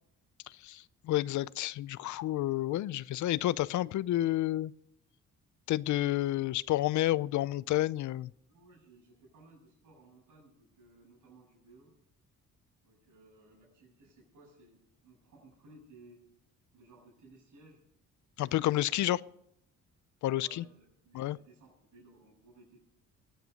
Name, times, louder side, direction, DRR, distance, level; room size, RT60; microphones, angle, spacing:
voice 1, 0.5-4.7 5.7-8.3 18.4-19.2 20.2-20.6 21.1-21.4, left 15 dB, 75° left, 20 dB, 0.6 m, -30 dB
voice 2, 8.5-11.9 12.8-16.2 16.7-17.8 18.6-19.0 20.3-22.8, right 2 dB, 80° right, -3 dB, 7.6 m, -59 dB
21.5 x 9.3 x 5.3 m, 0.76 s
cardioid pair, 90°, 30 cm